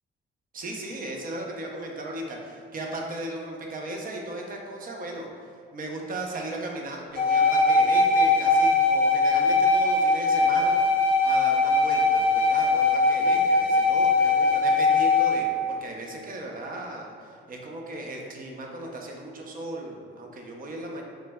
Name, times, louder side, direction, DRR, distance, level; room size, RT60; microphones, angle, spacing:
voice 1, 0.5-5.3 5.7-21.0, right 1 dB, 45° right, 1 dB, 0.5 m, -36 dB
sound 1, 7.2-15.4, left 3 dB, 50° left, 0.7 m, -21 dB
3.1 x 2.0 x 3.4 m, 2.2 s
cardioid pair, 90°, 20 cm